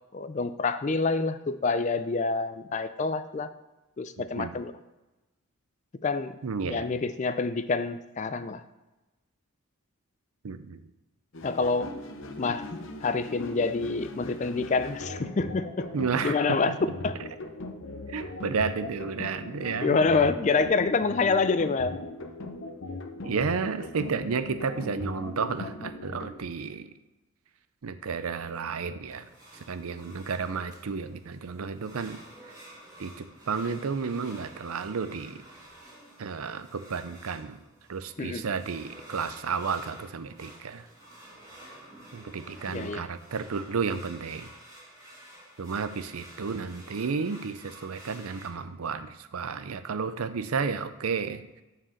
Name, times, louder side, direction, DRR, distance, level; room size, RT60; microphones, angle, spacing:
voice 1, 0.1-3.5 4.0-4.7 6.0-6.4 6.6-8.6 11.4-11.9 12.4-15.9 16.2-17.1 19.8-22.0 38.2-38.4 42.7-43.1, left 4 dB, 35° left, 12 dB, 0.4 m, -27 dB
voice 2, 6.4-6.9 10.4-10.8 15.9-16.8 18.1-20.0 23.2-26.9 27.8-29.3 29.7-32.2 33.0-35.4 36.2-37.6 37.9-40.9 42.1-44.5 45.6-51.6, right 5 dB, 80° right, 11 dB, 0.5 m, -32 dB
sound 1, 11.3-26.4, left 2 dB, 60° left, 0.7 m, -39 dB
sound 2, 29.1-48.5, right 1 dB, 15° right, 2.0 m, -50 dB
6.0 x 4.8 x 6.4 m, 1.1 s
head